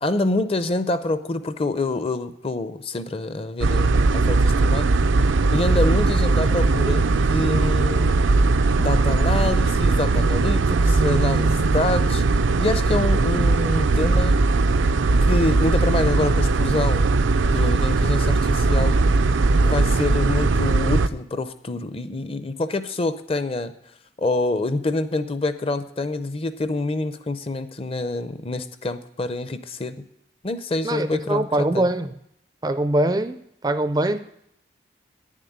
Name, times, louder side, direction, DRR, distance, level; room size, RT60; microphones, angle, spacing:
voice 1, 0.0-4.9 5.5-8.2 8.8-12.2 12.6-14.4 15.2-17.1 17.4-19.0 19.6-23.7 24.2-30.0 30.4-31.9, left 2 dB, 30° left, 0.6 m, -26 dB
sound 1, 3.6-21.1, right 3 dB, 85° right, 0.5 m, -19 dB
voice 2, 30.8-32.1 32.6-33.4 33.6-34.2, right 1 dB, 20° right, 0.4 m, -22 dB
9.9 x 7.5 x 9.4 m
head